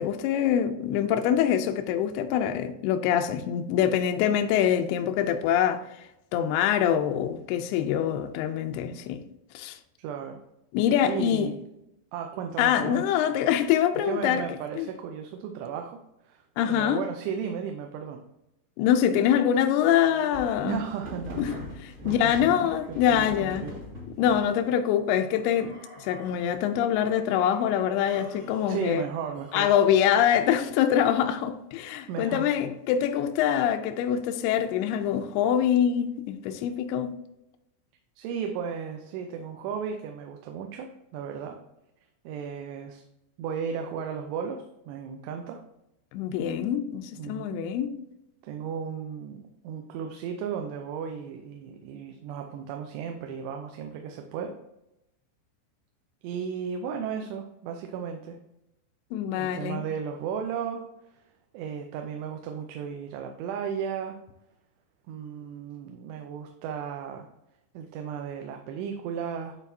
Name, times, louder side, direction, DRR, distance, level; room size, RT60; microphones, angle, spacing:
voice 1, 0.0-5.9 6.3-9.2 9.5-9.8 10.7-11.5 12.6-14.5 14.8-14.9 16.6-17.0 18.8-20.8 21.4-21.6 21.8-23.7 24.2-25.7 26.0-29.0 29.5-37.1 46.1-47.9 59.1-59.8, left 9 dB, 85° left, 2.3 m, -24 dB
voice 2, 10.0-10.4 11.0-11.6 12.1-13.0 14.0-16.0 16.2-16.4 16.7-18.2 20.6-21.7 22.0-23.7 28.7-29.7 32.1-32.5 38.2-41.6 42.3-43.0 43.4-45.6 47.2-47.6 48.4-54.6 56.2-58.4 59.3-60.9 61.5-64.2 65.1-67.3 67.7-69.6, right 7 dB, 80° right, 2.7 m, -35 dB
sound 1, 20.0-24.5 25.3-26.6 27.0-27.6 28.1-29.9, left 1 dB, 55° right, 0.9 m, -43 dB
11.5 x 3.9 x 2.7 m
omnidirectional pair, 5.0 m